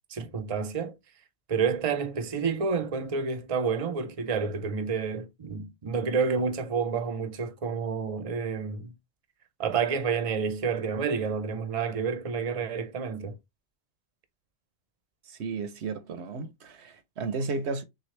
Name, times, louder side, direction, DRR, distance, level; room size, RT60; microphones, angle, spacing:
voice 1, 0.1-0.9 1.5-8.9 9.6-13.4, right 5 dB, 35° right, 0.7 m, -29 dB
voice 2, 15.3-17.8, right 4 dB, 80° right, 1.0 m, -33 dB
6.1 x 2.4 x 3.1 m
omnidirectional pair, 1.1 m